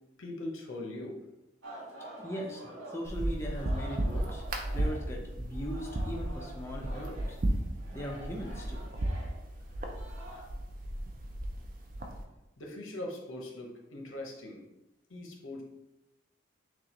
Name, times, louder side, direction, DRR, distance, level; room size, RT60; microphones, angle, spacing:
voice 1, 0.2-1.2 12.6-14.6 15.1-15.6, left 1 dB, 80° left, 0 dB, 0.9 m, -41 dB
Singing, 1.6-5.2 5.5-10.4, right 1 dB, 80° right, 1.2 m, -48 dB
voice 2, 2.2-4.4 4.7-7.4 7.9-8.8, equal, 15° left, -1 dB, 0.4 m, -39 dB
sound 1, 3.0-12.2, right 1 dB, 40° right, 0.5 m, -35 dB
6.3 x 2.4 x 2.9 m, 0.94 s
head